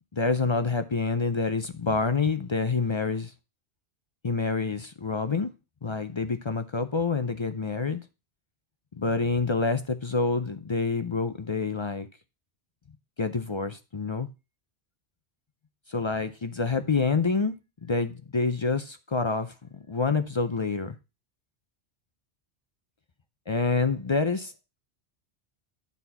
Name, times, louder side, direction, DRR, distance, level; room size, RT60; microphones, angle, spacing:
voice 1, 0.1-3.3 4.2-5.5 5.8-8.0 9.0-12.1 13.2-14.3 15.9-17.6 17.8-21.0 23.5-24.5, left 4 dB, 40° left, 0.4 m, -27 dB
9.5 x 4.1 x 5.6 m
omnidirectional pair, 1.1 m